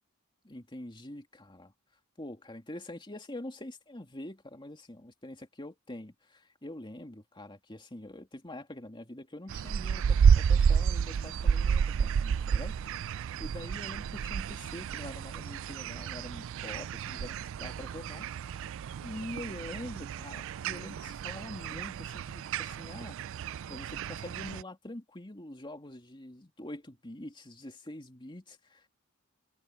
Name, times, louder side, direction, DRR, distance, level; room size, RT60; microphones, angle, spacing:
voice 1, 0.4-1.7 2.2-18.5 19.0-23.2 23.7-28.9, left 1 dB, 25° left, 2.6 m, -45 dB
sound 1, 9.5-24.6, right 7 dB, 65° right, 0.3 m, -30 dB
head